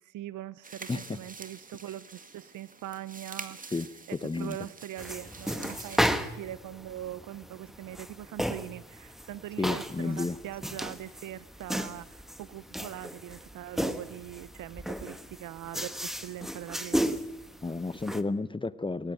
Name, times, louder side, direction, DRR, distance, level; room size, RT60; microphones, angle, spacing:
voice 1, 0.0-3.7 4.1-17.2, right 13 dB, 80° right, 18 dB, 0.7 m, -42 dB
sound 1, 0.6-6.2, right 4 dB, 25° right, 2.1 m, -46 dB
voice 2, 0.9-1.2 3.7-4.6 9.6-10.4 17.6-19.1, left 3 dB, 15° left, 16 dB, 0.8 m, -32 dB
sound 2, 5.0-18.2, equal, ahead, 1.4 m, -34 dB
20.5 x 17.5 x 9.2 m, 0.94 s
cardioid pair, 90°, 30 cm